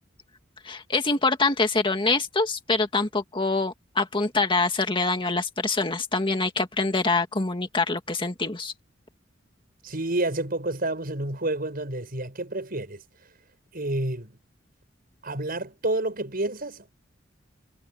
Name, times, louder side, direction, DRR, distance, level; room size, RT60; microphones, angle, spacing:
voice 1, 0.6-8.7, left 3 dB, 25° left, 2.0 m, -25 dB
voice 2, 9.8-13.0 13.7-14.3 15.2-16.9, right 2 dB, 50° right, 6.6 m, -29 dB
head